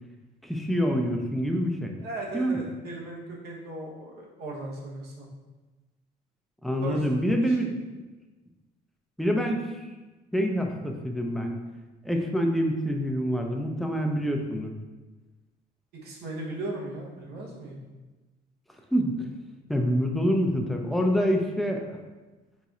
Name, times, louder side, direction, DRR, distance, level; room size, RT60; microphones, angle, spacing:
voice 1, 0.4-1.9 2.3-2.6 6.6-7.7 9.2-9.6 10.3-11.5 12.0-14.7 18.9-19.1 19.7-21.8, equal, ahead, 2 dB, 0.5 m, -26 dB
voice 2, 2.0-5.3 6.8-7.7 15.9-17.8, right 2 dB, 75° right, -2 dB, 1.0 m, -37 dB
4.1 x 4.0 x 2.4 m, 1.2 s
cardioid pair, 110°, 17 cm